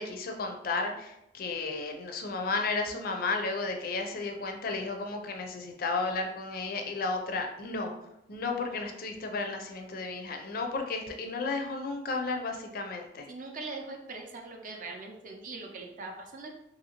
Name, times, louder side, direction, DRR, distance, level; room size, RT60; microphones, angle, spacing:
voice 1, 0.0-7.9 8.3-13.3, left 3 dB, 55° left, 3 dB, 0.5 m, -33 dB
voice 2, 13.3-16.6, right 3 dB, 45° right, 2 dB, 0.5 m, -41 dB
2.7 x 2.7 x 2.8 m, 0.86 s
head